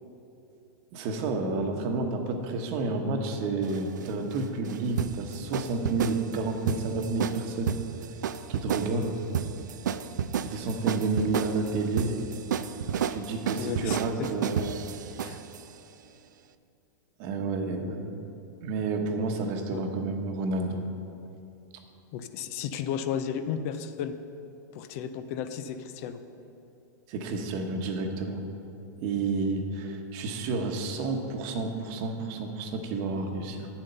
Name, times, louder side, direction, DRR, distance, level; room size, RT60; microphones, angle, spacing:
voice 1, 0.9-7.8 8.5-9.2 10.4-12.2 13.1-14.8 17.2-18.2 18.6-20.8 27.1-28.5 29.0-33.7, right 3 dB, 50° right, 4 dB, 1.2 m, -30 dB
sound 1, 3.6-15.6, right 8 dB, 80° right, 0.4 m, -32 dB
voice 2, 13.6-14.5 15.2-15.4 19.7-19.8 22.1-24.2 24.7-26.2, left 8 dB, 55° left, 10 dB, 0.6 m, -34 dB
8.9 x 7.3 x 5.5 m, 2.8 s
hypercardioid pair, 115°, 10 cm